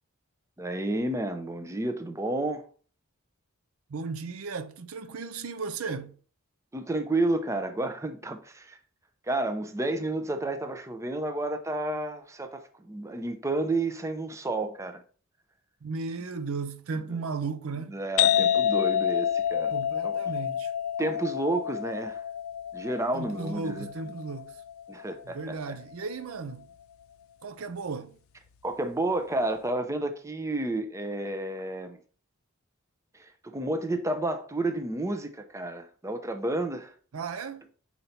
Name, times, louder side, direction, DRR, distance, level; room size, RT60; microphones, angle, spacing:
voice 1, 0.6-2.6 6.7-8.8 9.3-15.0 17.8-19.7 20.0-20.2 21.0-22.2 22.7-23.9 24.9-25.8 28.6-32.0 33.1-36.9, right 2 dB, 15° right, 0.6 m, -31 dB
voice 2, 3.9-6.1 15.8-17.9 19.7-20.7 23.1-24.5 25.2-26.7 27.4-28.2 37.1-37.6, right 4 dB, 75° right, 0.5 m, -35 dB
sound 1, 18.2-25.6, left 9 dB, 70° left, 0.4 m, -28 dB
5.4 x 4.4 x 4.1 m
head